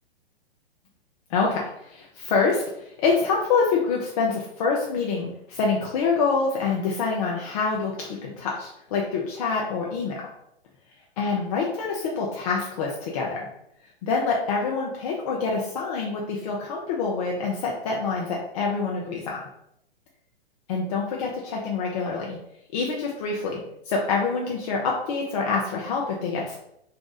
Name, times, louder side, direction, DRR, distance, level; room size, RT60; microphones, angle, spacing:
voice 1, 1.3-10.2 11.2-13.5 14.0-19.4 20.7-22.4 22.7-26.6, left 4 dB, 35° left, -2 dB, 0.6 m, -26 dB
2.6 x 2.3 x 3.9 m, 0.76 s
figure-of-eight pair, 115°, 31 cm